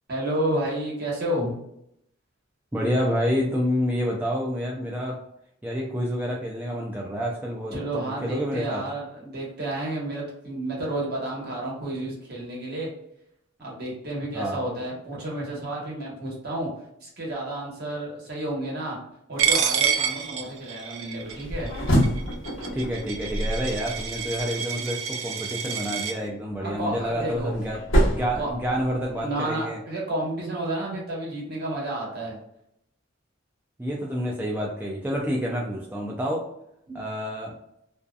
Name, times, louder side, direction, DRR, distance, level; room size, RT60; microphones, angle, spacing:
voice 1, 0.1-1.6 7.7-12.9 13.6-16.7 17.0-19.0 19.3-21.7 26.6-27.5 28.4-28.5 29.2-32.4, right 1 dB, 55° right, -3 dB, 1.1 m, -31 dB
voice 2, 2.7-5.2 5.6-8.8 14.3-14.6 22.7-27.8 28.1-29.8 33.8-36.5 36.9-37.5, equal, 10° right, -3 dB, 0.3 m, -28 dB
Coin (dropping), 19.4-26.1, right 7 dB, 80° right, 0.4 m, -28 dB
sound 1, 21.3-24.4 26.7-29.2, equal, 85° left, 0.8 m, -26 dB
2.7 x 2.3 x 2.3 m, 0.75 s
head